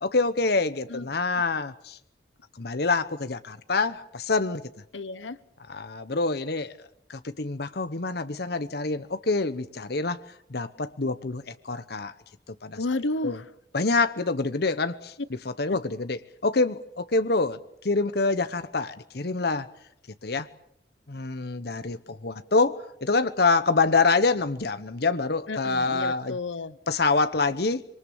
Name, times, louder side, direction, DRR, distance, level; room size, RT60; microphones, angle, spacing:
voice 1, 0.0-2.0 2.6-4.6 5.7-6.8 7.1-10.2 10.5-12.1 12.6-12.8 13.2-13.4 13.7-17.6 17.8-19.7 20.2-20.5 21.1-26.4 26.9-27.8, left 3 dB, 60° left, 11 dB, 0.9 m, -26 dB
voice 2, 4.9-5.4 12.8-13.4 15.7-15.8 25.5-26.7, left 2 dB, 90° left, 15 dB, 1.1 m, -31 dB
26.0 x 23.5 x 7.2 m, 0.75 s
head